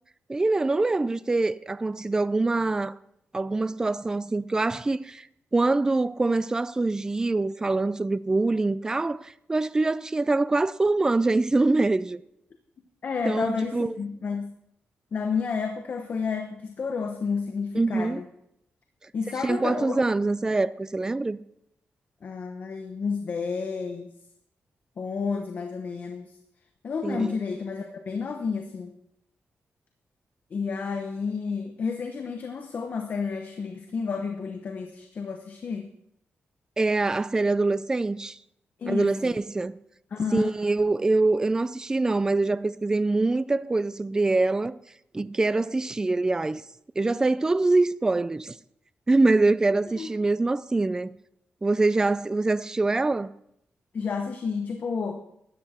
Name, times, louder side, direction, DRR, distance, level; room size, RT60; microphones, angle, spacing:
voice 1, 0.3-3.0 3.3-5.3 5.5-12.2 13.3-14.0 17.7-18.2 19.4-21.4 27.0-27.3 36.8-38.4 38.9-39.8 40.3-44.8 45.1-46.6 47.0-48.5 49.1-51.1 51.6-53.3, right 3 dB, 15° right, 0.3 m, -24 dB
voice 2, 13.0-14.5 15.1-18.2 19.1-20.0 22.2-24.1 25.0-26.4 26.8-28.9 30.5-35.9 38.8-39.3 40.1-40.5 50.0-50.1 53.9-55.2, left 5 dB, 50° left, 1.0 m, -31 dB
13.5 x 10.0 x 4.3 m
wide cardioid pair, 145°, 4 cm